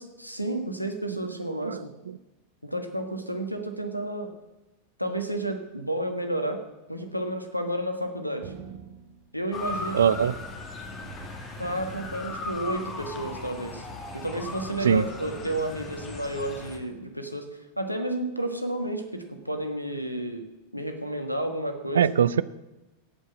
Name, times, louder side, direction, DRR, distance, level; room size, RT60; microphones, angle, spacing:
voice 1, 0.0-1.9 2.6-4.3 5.0-6.6 6.9-8.5 9.3-10.1 11.6-13.9 14.1-17.5 17.8-20.4 20.7-22.2, right 1 dB, 90° left, 7 dB, 1.4 m, -31 dB
sound 1, 8.4-9.7 10.0-11.3 11.6-12.9 13.4-13.5 14.3-15.2, right 7 dB, 50° right, 1.3 m, -45 dB
Motor vehicle (road) / Siren, 9.5-16.8, left 3 dB, 30° left, 2.0 m, -38 dB
voice 2, 9.9-10.3 14.8-15.0 22.0-22.4, right 8 dB, 65° right, 16 dB, 0.4 m, -21 dB
16.0 x 5.4 x 7.3 m, 1.0 s
figure-of-eight pair, 90°, 0 cm